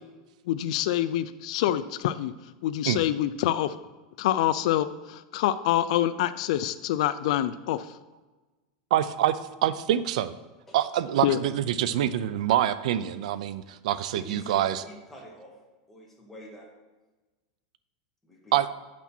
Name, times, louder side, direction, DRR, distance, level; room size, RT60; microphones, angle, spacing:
voice 1, 0.5-2.3 2.6-3.7 4.2-8.0 11.2-11.4, left 12 dB, 65° left, 12 dB, 0.4 m, -26 dB
voice 2, 8.9-10.4 10.7-14.8 18.5-18.7, right 11 dB, 75° right, 14 dB, 0.4 m, -26 dB
voice 3, 14.1-15.6 15.9-16.7 18.2-18.6, left 1 dB, 5° left, -3 dB, 1.8 m, -45 dB
8.1 x 6.0 x 4.4 m, 1.2 s
supercardioid pair, 145°, 4 cm